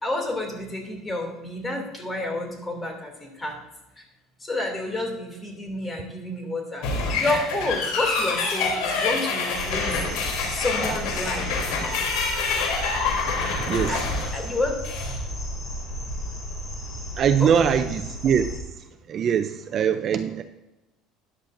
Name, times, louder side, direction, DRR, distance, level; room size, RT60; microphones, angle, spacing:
voice 1, 0.0-3.6 4.4-6.9 7.2-10.0 10.5-11.6 13.9-14.0 14.3-14.8 17.4-17.7, left 2 dB, 20° left, 2 dB, 2.6 m, -29 dB
sound 1, 6.8-15.2, left 4 dB, 85° left, 3.2 m, -26 dB
sound 2, 9.5-18.6, equal, 50° left, 3.7 m, -34 dB
voice 2, 13.5-14.1 17.2-18.5 18.8-20.4, right 8 dB, 40° right, 9 dB, 0.5 m, -23 dB
13.5 x 10.5 x 2.6 m, 1.0 s
cardioid pair, 140°, 0 cm